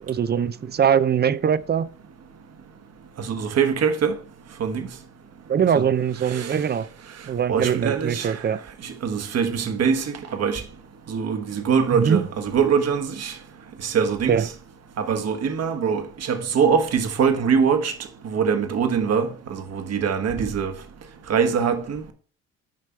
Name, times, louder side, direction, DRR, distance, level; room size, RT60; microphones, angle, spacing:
voice 1, 0.0-1.9 5.5-6.9 7.3-8.6 11.9-12.2 14.3-14.5, right 8 dB, 35° right, 0.5 m, -22 dB
voice 2, 3.2-4.2 4.6-4.9 5.7-5.8 6.3-6.6 7.5-8.4 8.8-10.6 11.1-13.3 13.8-14.5 15.0-17.9 18.2-20.7 21.3-22.0, right 6 dB, 55° right, 1.3 m, -23 dB
7.6 x 5.0 x 4.4 m
cardioid pair, 90°, 30 cm